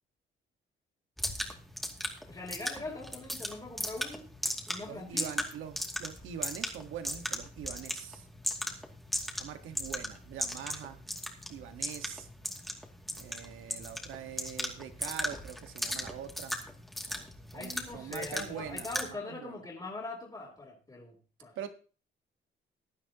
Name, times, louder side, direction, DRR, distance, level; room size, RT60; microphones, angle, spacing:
sound 1, 1.2-19.1, equal, ahead, 2.5 m, -38 dB
voice 1, 2.3-4.3 4.7-5.2 17.5-21.5, left 3 dB, 20° left, -4 dB, 3.5 m, -42 dB
voice 2, 4.9-8.3 9.4-11.0 11.5-12.3 13.2-16.6 17.5-19.6 21.5-21.7, right 9 dB, 85° right, 8 dB, 1.5 m, -43 dB
16.0 x 10.5 x 3.0 m, 0.37 s
cardioid pair, 90°, 20 cm